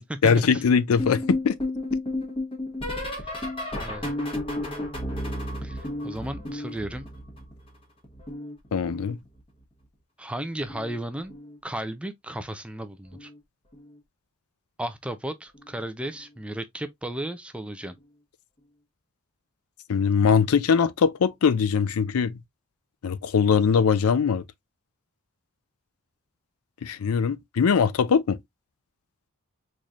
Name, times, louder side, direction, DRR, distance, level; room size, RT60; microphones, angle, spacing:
voice 1, 0.2-1.5 8.7-9.2 19.9-22.4 23.0-24.4 26.8-28.4, left 6 dB, 80° left, 0.4 m, -21 dB
sound 1, 1.0-7.8 8.0-9.6 10.6-11.0 11.2-11.6 13.1-13.4 13.7-14.0 15.5-15.6, left 1 dB, 25° left, 1.2 m, -32 dB
voice 2, 3.8-4.1 5.6-7.1 10.2-11.4 11.6-13.3 14.8-18.0, right 1 dB, 5° right, 0.4 m, -34 dB
4.1 x 3.2 x 2.4 m
head